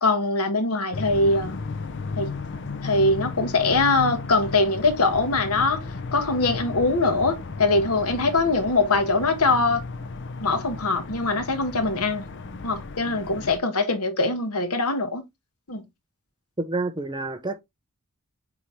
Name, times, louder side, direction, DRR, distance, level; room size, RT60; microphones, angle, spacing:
voice 1, 0.0-1.6 2.2-2.3 2.8-5.8 6.1-9.8 10.4-12.3 12.6-15.2 15.7-15.8, left 3 dB, 75° left, 1.4 m, -22 dB
sound 1, 0.9-13.6, left 4 dB, 55° left, 0.7 m, -35 dB
voice 2, 16.6-17.6, right 2 dB, 20° right, 0.8 m, -28 dB
8.1 x 3.6 x 3.3 m
head